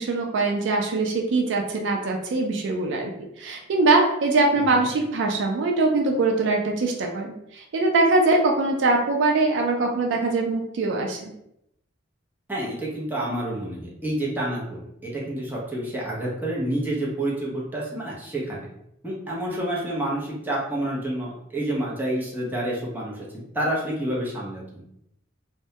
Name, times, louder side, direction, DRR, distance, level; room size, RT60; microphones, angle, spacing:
voice 1, 0.0-3.1 3.4-11.3, right 3 dB, 70° right, 2 dB, 0.4 m, -22 dB
voice 2, 12.5-18.7 19.0-23.3 23.5-24.8, right 1 dB, 10° right, -5 dB, 0.6 m, -29 dB
2.2 x 2.1 x 2.7 m, 0.79 s
head